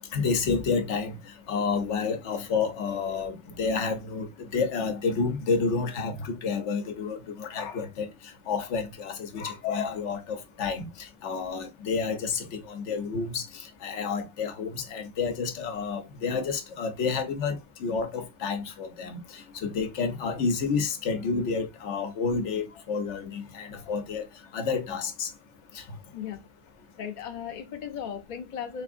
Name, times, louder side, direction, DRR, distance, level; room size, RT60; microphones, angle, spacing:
voice 1, 0.1-1.2 1.5-8.1 8.5-24.2 24.5-25.3 25.7-25.8, left 5 dB, 90° left, 1.1 m, -30 dB
voice 2, 27.0-28.8, left 8 dB, 50° left, 0.7 m, -36 dB
3.5 x 3.4 x 2.4 m
omnidirectional pair, 1.2 m